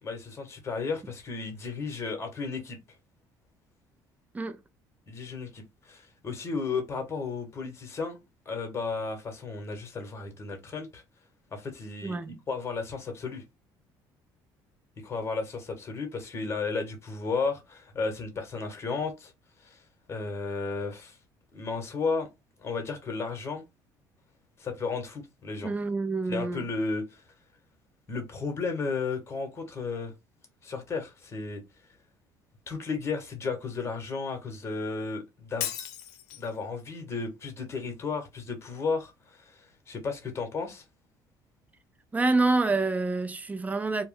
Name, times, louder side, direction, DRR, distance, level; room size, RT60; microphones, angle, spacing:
voice 1, 0.0-2.8 5.1-8.2 8.4-11.0 11.5-12.2 12.5-13.4 15.0-19.3 19.6-19.8 20.1-21.2 21.5-22.3 22.6-23.6 24.6-25.7 26.3-27.2 28.1-30.1 30.6-31.6 32.7-35.7 36.4-39.6 39.9-40.8, left 4 dB, 30° left, 1.0 m, -33 dB
voice 2, 12.0-12.4 25.6-26.7 42.1-44.1, right 3 dB, 15° right, 0.5 m, -27 dB
Shatter, 35.6-36.6, left 10 dB, 90° left, 0.5 m, -35 dB
2.1 x 2.1 x 3.7 m
supercardioid pair, 85°, 9 cm